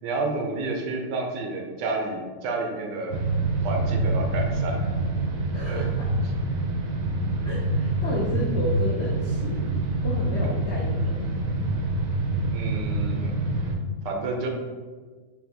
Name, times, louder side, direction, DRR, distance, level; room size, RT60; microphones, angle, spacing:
voice 1, 0.0-3.2 3.6-4.8 5.6-5.8 12.5-13.3 14.0-14.5, right 3 dB, 85° right, 1 dB, 1.3 m, -30 dB
sound 1, 3.1-13.7, right 2 dB, 65° right, 0.9 m, -26 dB
voice 2, 5.5-6.1 7.4-9.6 10.0-11.3, equal, 75° left, -4 dB, 0.6 m, -32 dB
5.5 x 2.3 x 2.7 m, 1.4 s
omnidirectional pair, 1.9 m